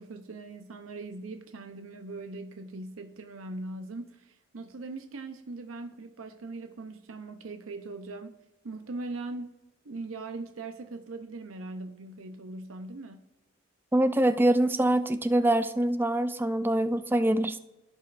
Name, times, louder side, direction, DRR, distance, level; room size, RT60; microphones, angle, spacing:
voice 1, 0.0-8.4 8.6-9.6 9.8-13.3, right 3 dB, 85° right, 7 dB, 0.7 m, -40 dB
voice 2, 13.9-17.6, right 1 dB, 10° right, 10 dB, 0.4 m, -24 dB
15.5 x 5.3 x 2.5 m, 0.97 s
head